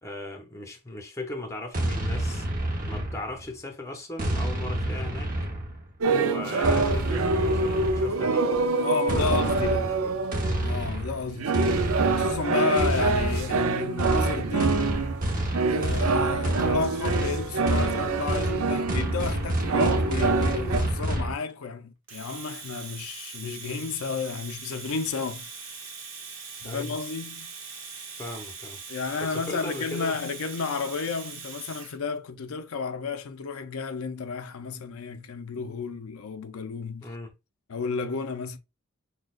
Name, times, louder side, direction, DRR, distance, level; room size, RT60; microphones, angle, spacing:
voice 1, 0.0-2.5 2.9-5.3 6.0-8.5 9.1-10.1 26.6-27.0 28.2-28.8 29.2-30.2 37.0-37.3, left 1 dB, 15° left, 0.8 m, -37 dB
sound 1, 1.7-3.5 4.2-5.9 6.6-8.3 9.1-21.3, right 1 dB, 40° right, 0.9 m, -29 dB
sound 2, 6.0-10.8 11.4-20.8, right 3 dB, 80° right, 0.5 m, -26 dB
voice 2, 8.8-9.9 10.6-11.6 12.2-14.9 15.7-25.5 26.6-27.5 28.9-37.1 37.7-38.6, left 5 dB, 80° left, 0.5 m, -32 dB
Domestic sounds home sounds, 22.1-32.0, right 5 dB, 60° right, 1.1 m, -41 dB
6.2 x 2.3 x 2.4 m
head